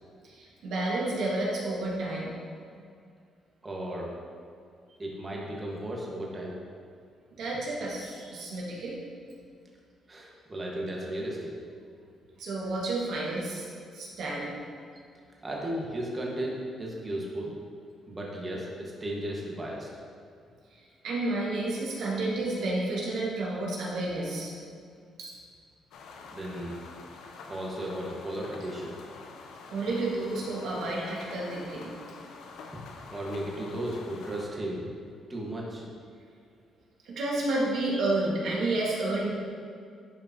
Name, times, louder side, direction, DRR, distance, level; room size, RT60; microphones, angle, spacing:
voice 1, 0.2-2.4 7.4-9.0 12.4-13.7 13.9-14.5 21.0-24.5 25.2-25.3 29.7-31.9 37.0-39.3, right 2 dB, 75° right, -4 dB, 1.8 m, -30 dB
voice 2, 3.6-4.1 5.0-6.5 10.1-11.5 15.4-17.6 18.1-19.9 26.3-26.8 27.5-29.0 33.1-34.8 35.3-35.8, right 1 dB, 25° right, -3 dB, 1.5 m, -35 dB
sound 1, 25.9-34.5, left 4 dB, 85° left, 0.7 m, -46 dB
10.5 x 5.2 x 2.9 m, 2.2 s
cardioid pair, 90°, 0 cm